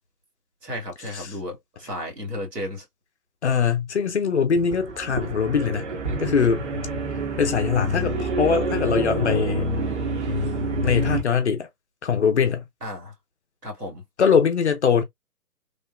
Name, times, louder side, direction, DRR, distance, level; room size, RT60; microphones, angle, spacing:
voice 1, 0.6-2.9 12.8-13.1 13.6-14.0, left 1 dB, 85° right, 1.9 m, -33 dB
voice 2, 3.4-5.9 6.2-6.6 7.4-9.7 10.8-11.7 12.0-12.6 14.2-15.0, left 6 dB, 45° left, 0.7 m, -22 dB
sound 1, 4.6-11.2, right 1 dB, 45° right, 1.3 m, -27 dB
3.3 x 2.7 x 2.3 m
figure-of-eight pair, 135°, 47 cm